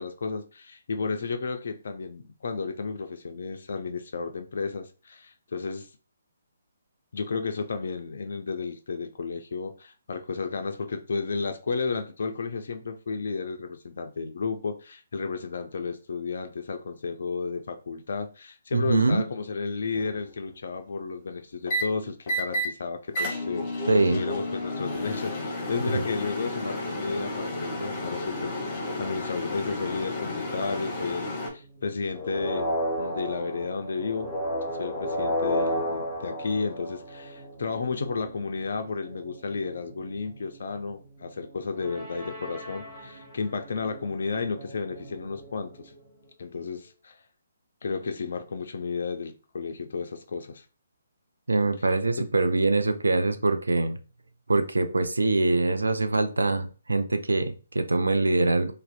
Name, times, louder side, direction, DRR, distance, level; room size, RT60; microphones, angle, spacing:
voice 1, 0.0-5.9 7.1-34.3 34.7-45.9 46.4-47.2 47.8-50.6, left 4 dB, 60° left, 0.3 m, -33 dB
voice 2, 18.7-19.2 23.9-24.2 25.9-26.0 51.5-54.0 54.5-58.7, right 2 dB, 75° right, 0.3 m, -24 dB
sound 1, 19.9-20.3 21.7-21.8 22.3-22.7 23.1-31.5, left 1 dB, 25° left, 0.7 m, -32 dB
sound 2, 27.5-46.3, right 2 dB, 40° right, 0.9 m, -48 dB
sound 3, 32.1-37.4 41.8-43.4, equal, ahead, 1.1 m, -31 dB
2.5 x 2.0 x 2.3 m
figure-of-eight pair, 135°, 0 cm